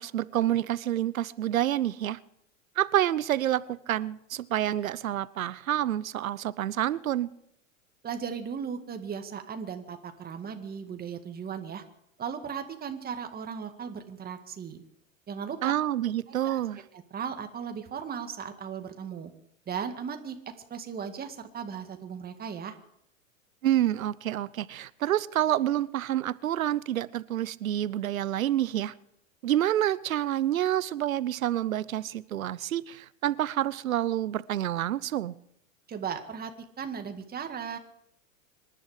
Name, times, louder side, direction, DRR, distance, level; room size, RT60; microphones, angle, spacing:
voice 1, 0.0-2.2 2.8-7.3 15.6-16.8 23.6-28.9 29.4-35.3, right 12 dB, 90° right, 19 dB, 0.8 m, -28 dB
voice 2, 8.0-11.8 12.2-14.8 15.3-15.7 16.3-16.6 17.1-19.3 19.7-20.4 20.7-22.7 35.9-36.5 36.8-37.8, right 7 dB, 25° right, 6 dB, 1.9 m, -36 dB
26.0 x 11.0 x 5.0 m, 0.75 s
hypercardioid pair, 110°, 40 cm